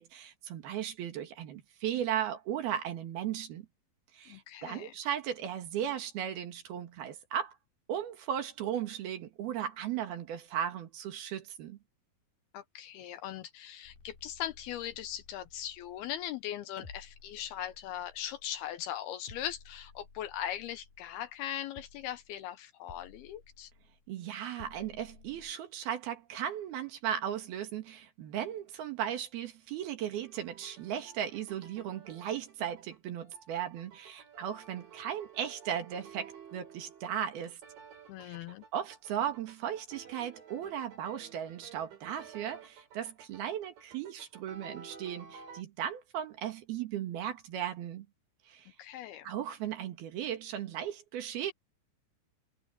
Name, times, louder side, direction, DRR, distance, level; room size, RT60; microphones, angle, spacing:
voice 1, 0.0-3.7 4.1-7.6 7.9-11.8 24.1-37.6 38.2-38.4 38.7-48.1 48.5-48.7 49.3-51.5, right 10 dB, 65° right, 3.5 m, -36 dB
voice 2, 4.3-5.0 12.5-23.7 38.1-38.6 48.8-49.3, left 11 dB, 75° left, 2.5 m, -40 dB
sound 1, 13.8-16.4 16.8-18.9 19.3-21.5 21.8-22.4 22.9-24.1 24.6-25.5, left 4 dB, 55° left, 6.1 m, -56 dB
sound 2, 30.2-45.6, right 6 dB, 90° right, 7.6 m, -53 dB
omnidirectional pair, 5.0 m